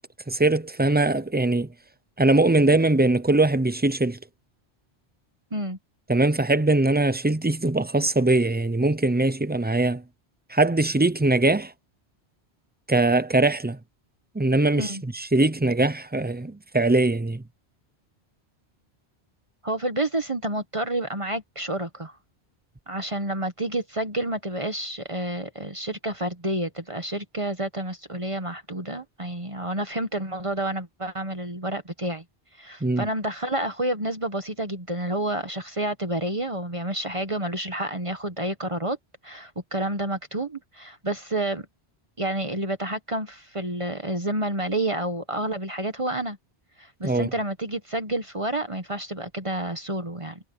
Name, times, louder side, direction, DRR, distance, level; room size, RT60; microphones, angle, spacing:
voice 1, 0.3-1.7 2.2-4.2 6.1-10.0 10.5-11.7 12.9-13.8 14.3-17.4 32.8-33.1 47.0-47.3, right 2 dB, 10° right, 0.5 m, -21 dB
voice 2, 19.6-22.2 22.9-32.2 32.6-39.0 39.2-41.7 42.2-46.4 46.8-50.4, right 1 dB, 30° right, 1.3 m, -29 dB
omnidirectional pair, 1.1 m